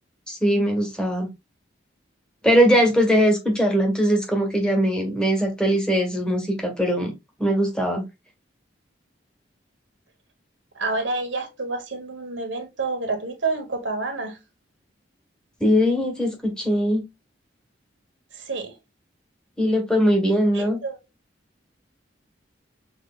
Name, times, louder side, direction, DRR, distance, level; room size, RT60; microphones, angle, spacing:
voice 1, 0.3-1.3 2.4-7.1 7.4-8.0 15.6-17.0 19.6-20.8, equal, 5° left, 1.4 m, -20 dB
voice 2, 10.7-14.4 18.3-18.7 20.5-21.0, right 3 dB, 80° right, 1.5 m, -28 dB
6.5 x 3.2 x 2.4 m
head